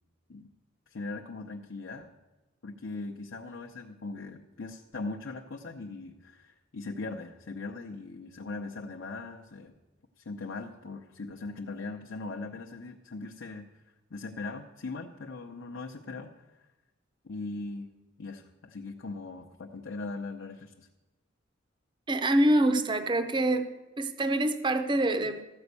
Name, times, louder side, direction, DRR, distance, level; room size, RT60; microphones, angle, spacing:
voice 1, 0.9-2.1 2.6-9.7 10.2-13.7 14.1-16.3 17.2-17.9 18.2-20.9, left 3 dB, 75° left, 1 dB, 0.7 m, -40 dB
voice 2, 22.1-23.7 24.0-25.4, right 1 dB, 25° right, 10 dB, 0.6 m, -25 dB
13.5 x 5.2 x 8.2 m, 1.1 s
head